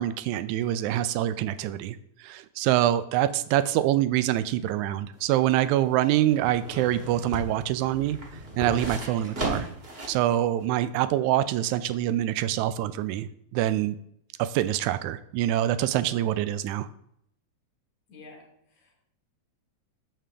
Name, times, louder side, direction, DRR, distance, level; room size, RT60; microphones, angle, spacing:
voice 1, 0.0-8.2 8.6-9.7 10.1-14.0 14.4-16.9, right 13 dB, 85° right, 13 dB, 1.9 m, -25 dB
sound 1, 5.1-10.2 10.6-10.7, right 1 dB, 35° right, 0.9 m, -36 dB
voice 2, 18.1-19.0, left 3 dB, 70° left, -1 dB, 2.7 m, -50 dB
9.1 x 3.4 x 6.7 m, 0.72 s
omnidirectional pair, 3.4 m